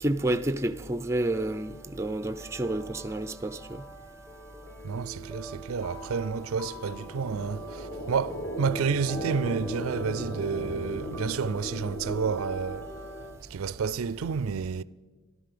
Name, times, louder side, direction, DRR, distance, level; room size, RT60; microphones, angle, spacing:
voice 1, 0.0-3.8, right 1 dB, 10° right, 0.4 m, -29 dB
sound 1, 1.1-13.4, right 3 dB, 10° left, 1.0 m, -44 dB
sound 2, 4.5-13.3, equal, 55° left, 4.4 m, -38 dB
voice 2, 4.8-12.9 13.5-14.8, right 5 dB, 75° right, 0.4 m, -30 dB
14.5 x 12.5 x 6.8 m
head